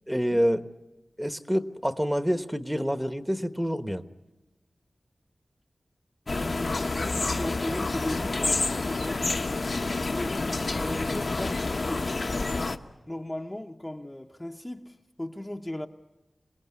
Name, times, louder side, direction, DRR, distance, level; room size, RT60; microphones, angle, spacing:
voice 1, 0.1-0.6 1.2-4.0, equal, 5° right, 1.1 m, -27 dB
sound 1, 6.3-12.8, left 3 dB, 60° left, 1.0 m, -28 dB
voice 2, 6.4-9.3 10.1-12.1 13.1-15.9, left 1 dB, 15° left, 0.9 m, -37 dB
27.0 x 18.5 x 9.6 m
wide cardioid pair, 80°, 0 cm